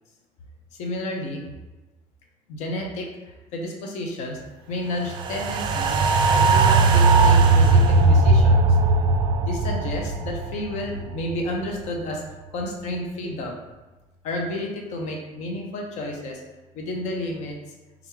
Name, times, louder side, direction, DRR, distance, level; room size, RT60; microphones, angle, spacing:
voice 1, 0.8-1.4 2.5-3.1 3.5-4.4 4.7-6.0 6.3-8.6 9.4-12.2 12.5-13.6 14.2-16.4 16.8-17.6, left 1 dB, 60° left, 1 dB, 0.7 m, -31 dB
sound 1, 5.1-11.5 11.9-12.0, right 3 dB, 35° right, 0.3 m, -18 dB
3.6 x 3.5 x 3.2 m, 1.1 s
cardioid pair, 170°, 13 cm